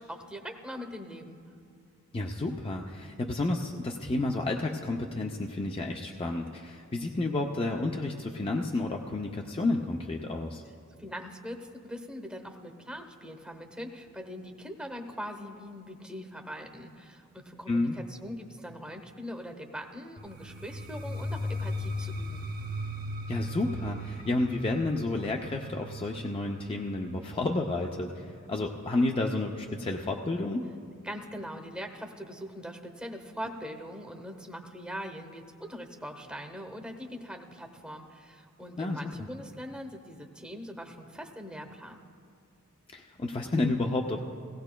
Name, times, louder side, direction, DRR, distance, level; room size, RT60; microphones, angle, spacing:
voice 1, 0.0-1.4 10.9-22.4 31.0-42.0, equal, 5° right, 4 dB, 0.8 m, -42 dB
voice 2, 2.1-10.6 17.7-17.9 23.3-30.7 38.8-39.0 42.9-44.2, left 2 dB, 25° left, 2 dB, 0.4 m, -31 dB
sound 1, 20.2-29.9, left 1 dB, 40° right, 0.9 m, -38 dB
17.5 x 16.5 x 2.2 m, 2.3 s
head